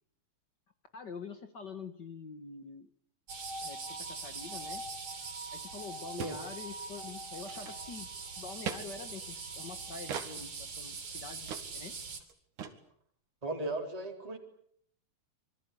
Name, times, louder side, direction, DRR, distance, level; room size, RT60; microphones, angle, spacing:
voice 1, 0.9-2.9 3.6-4.8 5.5-8.1 8.4-12.0, left 5 dB, 45° left, 9 dB, 1.5 m, -46 dB
sound 1, 3.3-12.2, right 3 dB, 50° right, 4.4 m, -42 dB
sound 2, 5.5-5.6 5.8-5.9 6.2-6.4 6.8-7.0 7.4-8.0 8.7-8.8 10.1-10.3 10.9-11.0 11.5-11.7 11.9-12.0 12.2-12.3 12.6-12.8, right 7 dB, 80° right, 3.5 m, -39 dB
voice 2, 13.4-14.4, right 2 dB, 10° right, 1 dB, 3.6 m, -36 dB
26.0 x 23.5 x 8.4 m, 0.68 s
omnidirectional pair, 3.5 m